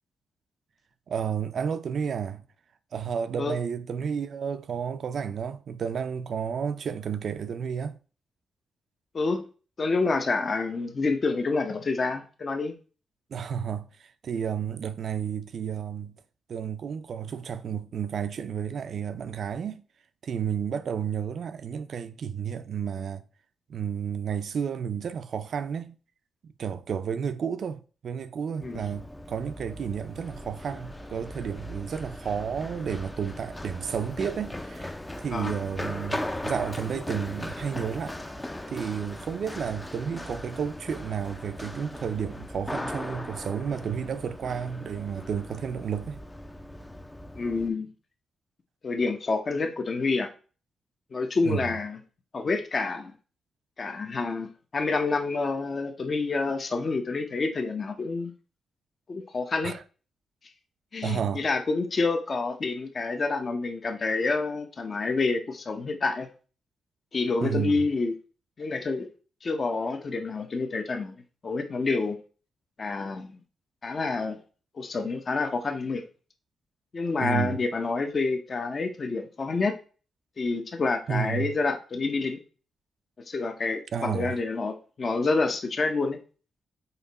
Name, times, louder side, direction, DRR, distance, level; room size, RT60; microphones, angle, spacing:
voice 1, 1.1-2.4 2.9-8.0 13.3-16.2 16.5-19.8 20.2-23.2 23.7-26.0 26.4-38.2 38.7-46.2 51.4-51.6 59.6-59.8 61.0-61.4 67.4-67.9 77.2-77.6 81.1-81.5 83.9-84.4, right 7 dB, 60° right, 0.5 m, -31 dB
voice 2, 9.8-12.7 28.6-28.8 35.3-35.5 47.4-47.9 48.8-50.3 51.1-52.0 52.3-53.1 53.8-58.3 59.1-59.7 60.9-66.3 67.1-68.1 68.6-69.1 69.4-71.1 71.4-72.2 72.8-73.4 73.8-74.4 74.7-76.0 76.9-79.8 80.4-82.4 83.3-86.2, left 3 dB, 40° left, 0.8 m, -28 dB
Run, 28.6-47.7, left 1 dB, 10° left, 0.5 m, -38 dB
5.6 x 4.4 x 4.1 m
cardioid pair, 110°, 0 cm